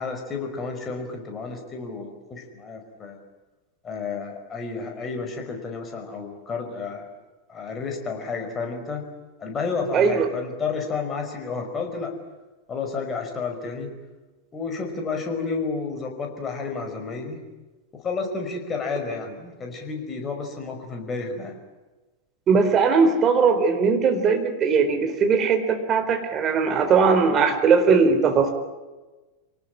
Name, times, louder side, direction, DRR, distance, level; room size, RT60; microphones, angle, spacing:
voice 1, 0.0-3.2 3.8-7.1 7.5-9.1 9.4-12.2 12.7-13.9 14.5-17.4 17.9-21.6, left 4 dB, 20° left, 4 dB, 5.4 m, -31 dB
voice 2, 9.9-10.3 22.5-28.5, right 5 dB, 30° right, 6 dB, 4.1 m, -19 dB
26.5 x 19.0 x 9.9 m, 1.2 s
figure-of-eight pair, 90°, 0 cm